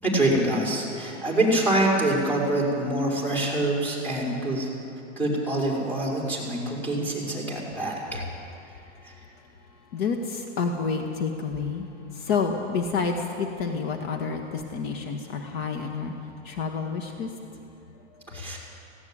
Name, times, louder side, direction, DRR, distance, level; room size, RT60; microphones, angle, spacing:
voice 1, 0.0-4.7 5.2-8.2 18.3-18.6, right 1 dB, 5° left, -3 dB, 5.2 m, -25 dB
voice 2, 9.9-17.3 18.3-18.4, left 5 dB, 55° left, 3 dB, 1.9 m, -29 dB
18.5 x 17.0 x 9.0 m, 2.7 s
supercardioid pair, 140°, 37 cm